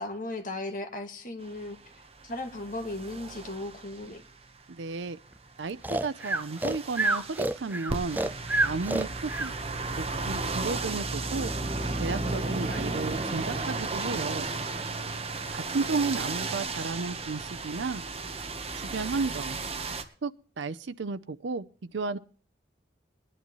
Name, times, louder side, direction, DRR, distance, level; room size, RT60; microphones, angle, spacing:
voice 1, 0.0-1.8 2.2-4.2 12.2-13.2, left 2 dB, 45° left, 1.9 m, -37 dB
sound 1, 1.4-4.3 5.6-20.0, right 3 dB, 35° right, 1.2 m, -34 dB
voice 2, 4.7-5.2 5.6-8.2 8.6-9.5 10.0-11.5 12.0-14.5 15.5-18.0 18.7-19.6 20.2-20.3 20.6-21.6 21.9-22.2, right 4 dB, 85° right, 0.6 m, -33 dB
Breathing, 5.8-9.5, right 2 dB, 10° right, 0.5 m, -28 dB
20.0 x 11.0 x 3.1 m
head